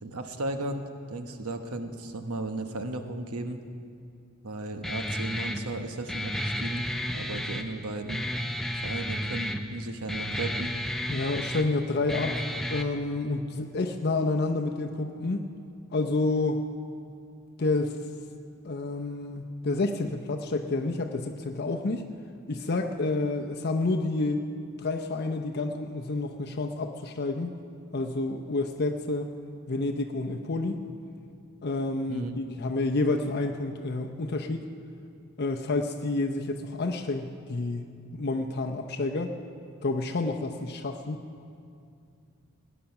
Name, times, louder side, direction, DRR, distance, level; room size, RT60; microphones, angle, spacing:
voice 1, 0.0-3.6 4.4-6.9 7.1-8.2 8.8-10.8 32.1-32.4, right 2 dB, 90° right, 6 dB, 1.0 m, -35 dB
Guitar, 4.8-12.8, equal, ahead, 0.5 m, -32 dB
voice 2, 11.1-15.5 15.9-16.6 17.6-18.0 18.6-22.1 22.5-24.4 24.8-27.5 27.9-29.3 29.7-30.8 31.6-34.7 35.4-37.8 38.1-39.3 39.8-41.2, left 2 dB, 50° left, 3 dB, 0.6 m, -29 dB
18.0 x 10.0 x 5.9 m, 2.4 s
head